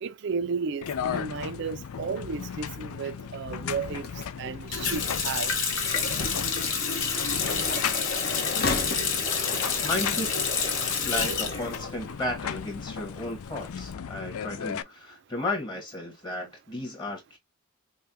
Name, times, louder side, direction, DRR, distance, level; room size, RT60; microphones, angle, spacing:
voice 1, 0.0-4.1 4.4-5.5, right 5 dB, 55° right, 0.4 m, -33 dB
sound 1, 0.8-14.8, left 7 dB, 85° left, 0.4 m, -36 dB
sound 2, 3.6-11.8, left 3 dB, 45° left, 0.8 m, -37 dB
Water tap faucet, 4.7-12.5 12.8-13.8, left 5 dB, 60° left, 1.2 m, -29 dB
voice 2, 9.8-10.3 10.9-17.4, left 2 dB, 20° left, 1.3 m, -34 dB
5.4 x 2.2 x 2.6 m
head